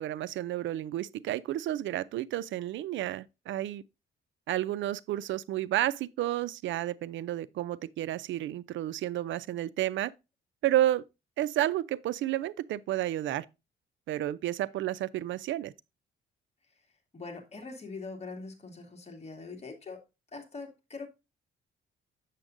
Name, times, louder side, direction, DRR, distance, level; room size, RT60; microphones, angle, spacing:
voice 1, 0.0-3.8 4.5-10.1 10.6-11.0 11.4-13.5 14.1-15.7, right 13 dB, 70° right, 0.4 m, -31 dB
voice 2, 17.1-20.0 20.3-21.1, left 3 dB, 35° left, 2.3 m, -43 dB
7.5 x 7.1 x 2.5 m
cardioid pair, 90°, 20 cm